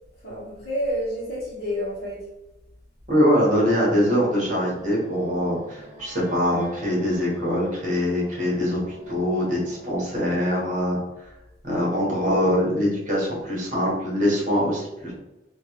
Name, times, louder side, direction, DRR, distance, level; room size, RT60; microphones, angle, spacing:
voice 1, 0.2-2.3, equal, 50° left, -4 dB, 1.2 m, -29 dB
voice 2, 3.1-8.8 9.1-11.0 11.6-15.1, equal, 40° right, -5 dB, 1.3 m, -23 dB
sound 1, 3.3-9.9, equal, 20° left, 1.3 m, -46 dB
3.2 x 2.7 x 3.0 m, 0.97 s
head